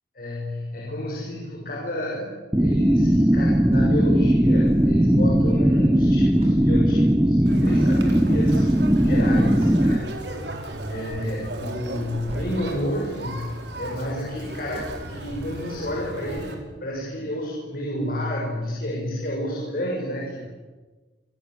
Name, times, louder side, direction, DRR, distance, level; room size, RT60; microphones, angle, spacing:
voice 1, 0.2-2.3 2.6-8.7 9.0-10.1 10.6-20.5, left 1 dB, 55° left, -2 dB, 7.0 m, -30 dB
sound 1, 2.5-10.0, equal, 10° right, 0.9 m, -19 dB
sound 2, 3.7-5.3 5.7-5.8 5.9-12.9 13.3-15.5 15.9-16.0 16.4-16.5, equal, 35° right, 7.6 m, -43 dB
Conversation, 7.5-16.5, right 1 dB, 80° right, 4.7 m, -35 dB
27.0 x 25.5 x 8.1 m, 1.3 s
head